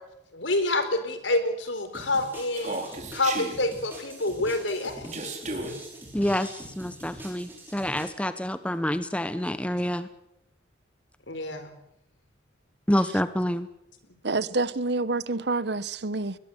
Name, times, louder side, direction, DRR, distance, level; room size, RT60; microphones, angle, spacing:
voice 1, 0.3-5.1 11.3-11.8, left 2 dB, 75° left, 4.3 m, -28 dB
sound 1, 1.9-8.1, right 1 dB, 10° right, 6.0 m, -44 dB
Human voice, 2.6-3.5 5.1-5.7, right 2 dB, 40° right, 4.5 m, -33 dB
voice 2, 6.1-10.1 12.9-13.7, left 1 dB, 5° left, 0.9 m, -27 dB
voice 3, 14.2-16.4, right 3 dB, 60° right, 1.0 m, -27 dB
21.5 x 20.5 x 7.9 m
head